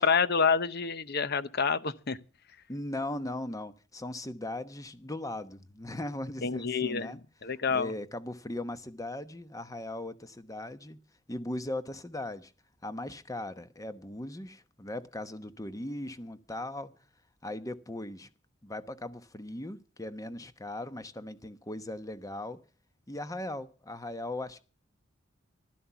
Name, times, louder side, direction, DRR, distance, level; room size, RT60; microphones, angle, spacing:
voice 1, 0.0-2.2 6.4-7.9, left 5 dB, 55° left, 0.9 m, -28 dB
voice 2, 2.7-7.2 7.7-11.0 11.3-12.5 12.8-16.9 17.4-18.3 18.6-22.6 23.1-24.6, left 1 dB, 15° left, 1.0 m, -38 dB
15.5 x 12.5 x 5.9 m
head